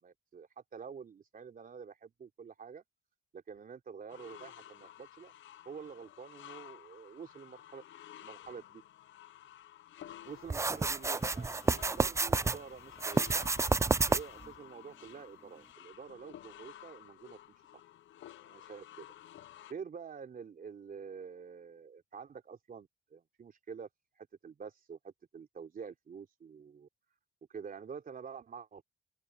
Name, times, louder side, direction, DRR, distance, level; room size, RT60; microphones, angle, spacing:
voice 1, 0.0-2.8 3.3-5.3 5.6-7.8 8.2-8.8 10.2-13.4 14.1-17.4 18.4-19.1 19.7-23.9 24.2-26.9 27.5-28.8, right 6 dB, 45° right, 3.3 m, -48 dB
sound 1, 4.1-19.7, left 12 dB, 70° left, 0.9 m, -53 dB
sound 2, 10.5-12.6 13.0-14.5, right 3 dB, 15° right, 0.4 m, -29 dB
open air
cardioid pair, 90°, 20 cm